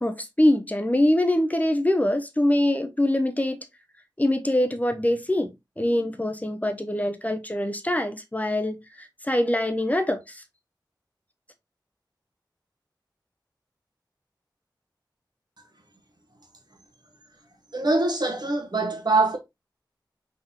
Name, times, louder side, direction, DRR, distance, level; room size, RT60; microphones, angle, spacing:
voice 1, 0.0-3.7 4.2-5.5 5.8-10.4, left 1 dB, 20° left, 0.7 m, -24 dB
voice 2, 17.7-19.4, right 2 dB, 60° right, 1.4 m, -23 dB
3.8 x 3.6 x 2.8 m
wide cardioid pair, 50°, 8 cm